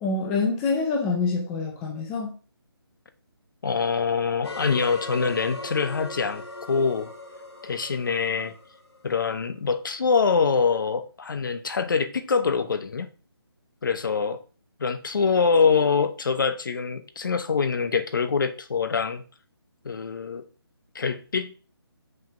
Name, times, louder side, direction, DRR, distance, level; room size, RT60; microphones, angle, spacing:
voice 1, 0.0-2.3, left 4 dB, 5° left, 0.4 m, -26 dB
voice 2, 3.6-7.1 7.6-8.5 9.0-13.1 13.8-14.4 14.8-19.2 19.8-20.4 20.9-21.5, left 5 dB, 50° left, 1.0 m, -24 dB
sound 1, 4.4-9.4, left 2 dB, 90° left, 2.4 m, -39 dB
6.4 x 4.8 x 5.8 m
hypercardioid pair, 165°, 13 cm